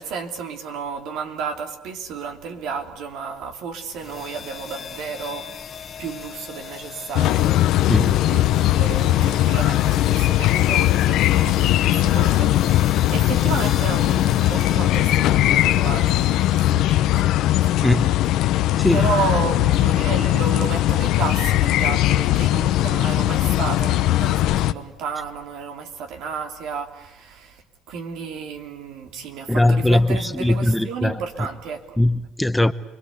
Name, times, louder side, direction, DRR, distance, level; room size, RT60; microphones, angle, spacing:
voice 1, 0.0-5.5 6.0-7.9 8.3-18.3 18.9-32.0, right 5 dB, 75° right, 3.0 m, -32 dB
sound 1, 3.9-16.8, left 7 dB, 40° left, 1.5 m, -35 dB
sound 2, 7.1-24.7, left 14 dB, 75° left, 0.9 m, -19 dB
voice 2, 7.9-8.2 17.8-18.1 18.8-19.1 29.5-31.2 32.0-32.7, left 1 dB, 5° left, 0.9 m, -20 dB
28.5 x 22.0 x 8.2 m
cardioid pair, 95°, 0 cm